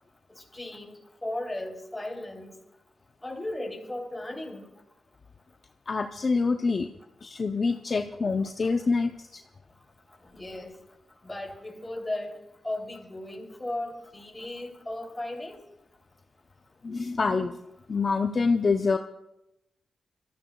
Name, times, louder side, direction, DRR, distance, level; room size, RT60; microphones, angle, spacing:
voice 1, 0.3-2.5 3.2-4.7 10.3-10.8 11.2-12.4 12.6-15.6, left 1 dB, 10° left, 1 dB, 2.9 m, -36 dB
voice 2, 5.9-6.9 7.2-9.4 16.8-17.6 17.9-19.0, left 4 dB, 40° left, 5 dB, 0.6 m, -26 dB
26.0 x 14.0 x 2.3 m, 0.90 s
cardioid pair, 100°, 0 cm